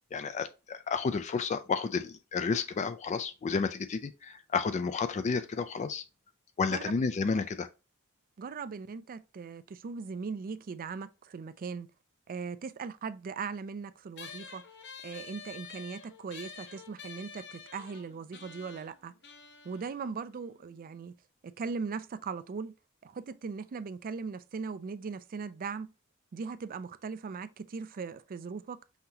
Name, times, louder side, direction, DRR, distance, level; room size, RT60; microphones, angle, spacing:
voice 1, 0.1-6.0 6.6-7.7, left 5 dB, 35° left, 0.3 m, -31 dB
voice 2, 8.4-11.9 12.3-14.6 15.0-19.1 19.6-21.1 21.4-22.7 23.0-25.9 26.3-28.8, right 5 dB, 40° right, 0.4 m, -39 dB
sound 1, 14.2-21.0, left 6 dB, 55° left, 0.7 m, -49 dB
5.7 x 2.8 x 2.7 m
head